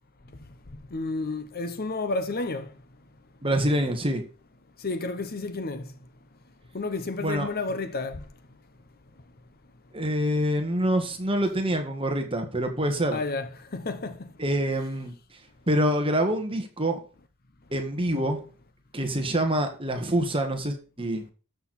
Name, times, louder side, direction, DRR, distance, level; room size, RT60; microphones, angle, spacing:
voice 1, 0.9-2.6 4.8-5.8 6.7-8.2 13.1-14.3, left 3 dB, 45° left, 0.9 m, -31 dB
voice 2, 3.4-4.2 7.2-7.5 9.9-13.2 14.4-15.1 15.7-17.0 17.7-18.4 18.9-21.2, right 1 dB, 25° right, 1.7 m, -26 dB
13.0 x 6.5 x 4.3 m
head